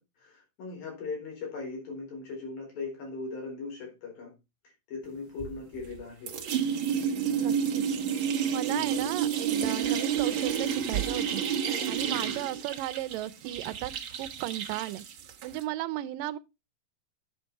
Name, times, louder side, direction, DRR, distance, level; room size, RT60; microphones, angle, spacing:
voice 1, 0.2-4.3 4.9-6.4 8.7-9.0 11.9-12.2, left 4 dB, 85° left, 5.9 m, -39 dB
sound 1, 5.4-6.0 6.3-15.6, right 8 dB, 65° right, 1.3 m, -30 dB
voice 2, 7.4-7.9 8.5-11.4 11.9-13.9 14.2-15.0 15.4-16.4, right 15 dB, 80° right, 2.3 m, -35 dB
10.5 x 6.5 x 4.5 m
omnidirectional pair, 4.0 m